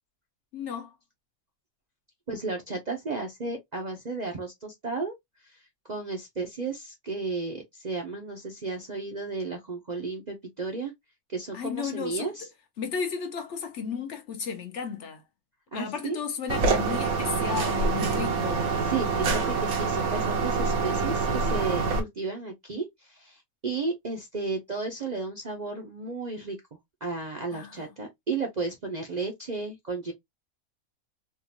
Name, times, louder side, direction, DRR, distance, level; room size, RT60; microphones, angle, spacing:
voice 1, 0.5-1.0 11.5-12.3 12.8-15.2 15.7-18.8 27.5-27.9, left 6 dB, 60° left, 0.9 m, -34 dB
voice 2, 2.3-5.1 5.4-5.6 5.9-10.9 11.3-12.5 15.7-16.2 18.8-26.6 27.0-30.1, right 4 dB, 45° right, 0.6 m, -33 dB
sound 1, 16.5-22.0, right 4 dB, 80° right, 1.4 m, -26 dB
3.7 x 2.4 x 2.7 m
omnidirectional pair, 1.5 m